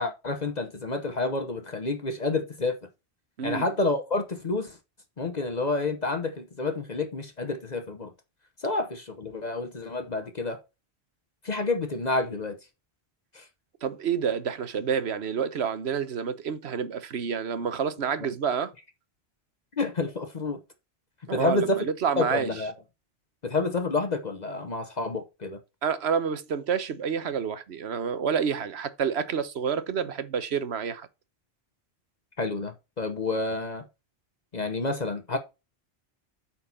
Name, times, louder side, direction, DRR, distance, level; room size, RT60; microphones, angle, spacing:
voice 1, 0.0-2.8 3.4-4.8 5.2-8.1 8.6-10.6 11.4-12.6 13.3-13.4 19.8-20.6 21.3-21.8 22.2-22.7 23.4-25.6 32.4-33.8 34.5-35.4, left 3 dB, 45° left, 1.0 m, -29 dB
voice 2, 13.8-18.7 21.3-22.5 25.8-31.1, right 7 dB, 80° right, 1.2 m, -28 dB
8.6 x 4.5 x 5.5 m
omnidirectional pair, 1.1 m